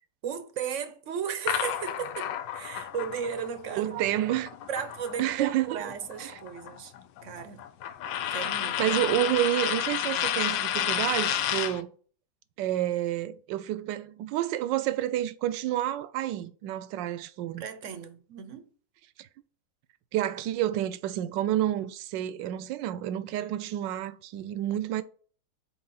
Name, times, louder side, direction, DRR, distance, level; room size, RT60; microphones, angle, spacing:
voice 1, 0.2-3.9 4.7-6.9 7.2-7.7 8.3-9.0 17.6-18.7, right 7 dB, 60° right, 0.8 m, -35 dB
sound 1, 1.5-5.5 5.8-11.8, left 10 dB, 90° left, 1.3 m, -31 dB
voice 2, 3.8-4.5 5.2-5.8 6.2-6.3 8.8-11.9 12.6-17.6 19.2-19.3 20.1-25.0, right 13 dB, 85° right, 1.2 m, -29 dB
4.6 x 4.2 x 5.6 m
omnidirectional pair, 1.9 m